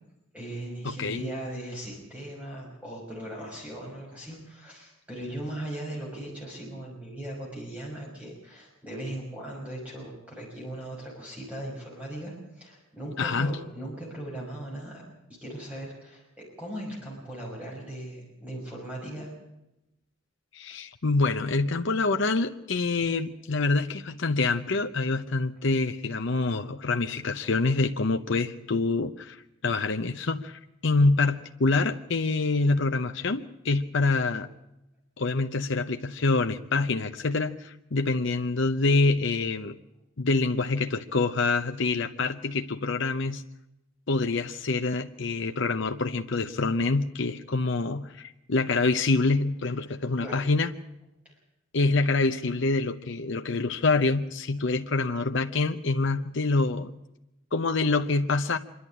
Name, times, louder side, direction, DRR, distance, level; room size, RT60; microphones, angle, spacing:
voice 1, 0.3-15.0 15.4-19.3 50.2-50.5 51.2-51.4, right 1 dB, 5° right, -3 dB, 5.9 m, -38 dB
voice 2, 0.8-1.2 13.2-13.6 20.5-34.5 35.2-39.8 40.2-43.4 44.1-50.7 51.7-56.9 57.5-58.6, left 3 dB, 65° left, 7 dB, 0.8 m, -26 dB
26.0 x 11.5 x 9.9 m, 0.89 s
head